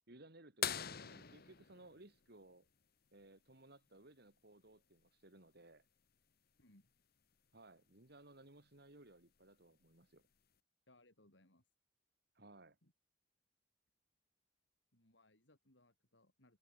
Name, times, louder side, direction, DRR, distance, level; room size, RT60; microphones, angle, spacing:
voice 1, 0.1-2.7 3.1-5.9 7.5-10.2 12.3-12.8, right 2 dB, 60° right, 3.4 m, -61 dB
sound 1, 0.6-3.1 5.0-5.1 7.3-7.4 9.1-9.4 10.2-10.3, left 9 dB, 55° left, 1.5 m, -43 dB
voice 2, 6.6-6.9 10.9-11.7 12.8-12.9 14.9-16.6, left 1 dB, 75° left, 6.0 m, -69 dB
head